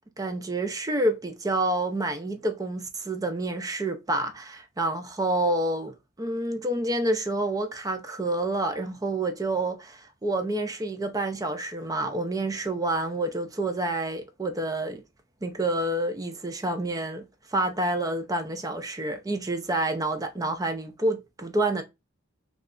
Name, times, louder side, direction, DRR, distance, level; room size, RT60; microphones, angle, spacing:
voice 1, 0.2-15.0 15.4-17.3 17.5-21.8, right 2 dB, 20° right, 0.5 m, -28 dB
3.2 x 2.4 x 3.6 m
head